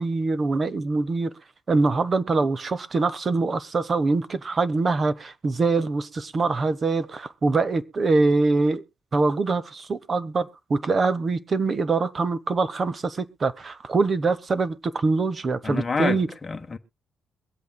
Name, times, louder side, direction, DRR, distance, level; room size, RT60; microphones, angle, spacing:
voice 1, 0.0-1.3 1.7-8.8 9.1-16.3, right 3 dB, 35° right, 0.9 m, -24 dB
voice 2, 15.6-16.8, left 4 dB, 25° left, 1.1 m, -28 dB
23.0 x 8.2 x 2.2 m
cardioid pair, 125°, 0 cm